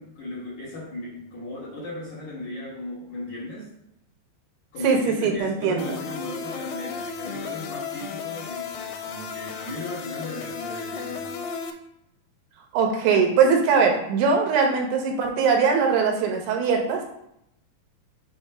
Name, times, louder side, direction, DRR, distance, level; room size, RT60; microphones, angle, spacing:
voice 1, 0.0-3.7 4.7-11.3, left 1 dB, 60° left, -8 dB, 2.0 m, -36 dB
voice 2, 4.8-6.0 12.7-17.0, right 5 dB, 75° right, 1 dB, 3.2 m, -21 dB
sound 1, 5.8-11.7, left 6 dB, 85° left, 3.0 m, -34 dB
7.3 x 2.7 x 5.5 m, 0.79 s
omnidirectional pair, 5.4 m